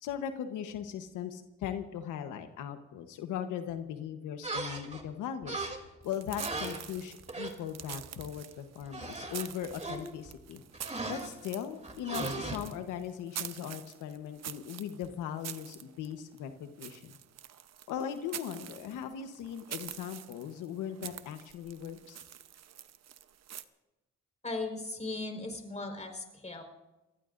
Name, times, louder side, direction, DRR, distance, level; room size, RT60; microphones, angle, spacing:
voice 1, 0.0-5.7 6.0-10.6 11.1-17.1 17.9-22.2, left 9 dB, 90° left, 7 dB, 1.1 m, -39 dB
sound 1, 4.4-5.1 5.4-6.0 6.4-7.5 7.8-8.1 8.3-8.4 8.8-10.4 10.7-11.3 11.8-12.6, right 3 dB, 20° right, 2.9 m, -38 dB
sound 2, 6.0-23.6, right 10 dB, 60° right, 0.9 m, -46 dB
voice 2, 24.4-26.6, left 2 dB, 20° left, 4 dB, 4.5 m, -37 dB
28.0 x 19.5 x 2.6 m, 1.1 s
cardioid pair, 90°, 30 cm